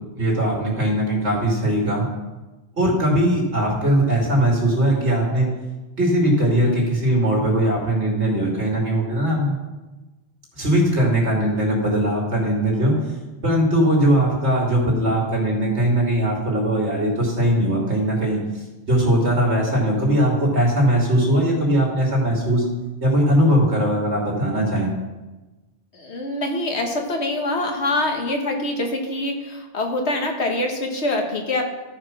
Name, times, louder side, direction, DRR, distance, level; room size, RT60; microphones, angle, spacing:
voice 1, 0.1-2.1 2.8-5.5 6.0-9.6 10.5-12.9 13.4-18.4 18.9-22.6 23.0-24.9, right 1 dB, 80° right, -2 dB, 2.9 m, -20 dB
voice 2, 25.9-31.6, left 2 dB, 75° left, 2 dB, 1.7 m, -24 dB
14.0 x 4.9 x 6.0 m, 1.1 s
omnidirectional pair, 1.1 m